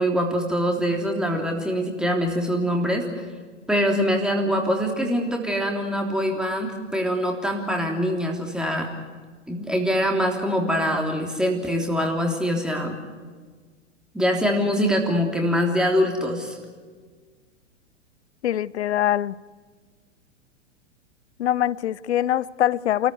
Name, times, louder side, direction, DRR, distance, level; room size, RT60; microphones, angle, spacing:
voice 1, 0.0-3.2 3.7-8.9 9.5-13.0 14.1-16.6, equal, ahead, 3.3 m, -24 dB
voice 2, 18.4-19.4 21.4-23.1, left 11 dB, 60° left, 0.7 m, -23 dB
29.0 x 14.5 x 9.5 m
figure-of-eight pair, 105°, 37 cm